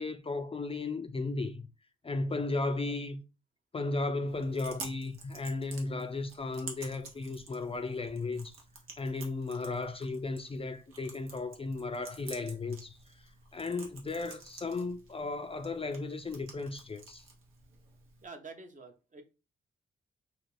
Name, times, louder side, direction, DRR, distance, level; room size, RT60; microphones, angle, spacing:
voice 1, 0.0-1.6 2.0-3.2 3.7-8.6 9.0-17.2, left 3 dB, 25° left, 0.4 m, -35 dB
Chewing mastication, 4.3-18.3, right 4 dB, 75° right, 0.8 m, -50 dB
voice 2, 18.2-19.2, right 3 dB, 35° right, 0.7 m, -47 dB
2.4 x 2.4 x 3.2 m
supercardioid pair, 45°, 21 cm